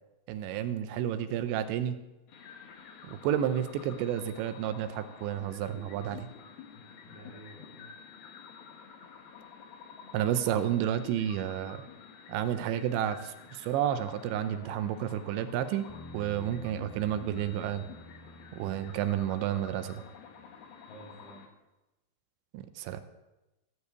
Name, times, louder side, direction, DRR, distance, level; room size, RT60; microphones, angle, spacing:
voice 1, 0.3-2.0 3.1-6.3 10.1-11.8 12.3-15.9 16.1-17.8 18.6-20.0 22.5-23.0, right 10 dB, 80° right, 11 dB, 2.9 m, -31 dB
sound 1, 2.3-21.5, left 6 dB, 65° left, 2.8 m, -50 dB
voice 2, 6.7-7.9 8.7-8.9 20.8-21.4, equal, 85° left, -6 dB, 4.7 m, -51 dB
Bass guitar, 15.9-20.2, equal, 5° left, 2.3 m, -50 dB
15.0 x 5.5 x 7.9 m, 1.0 s
omnidirectional pair, 5.3 m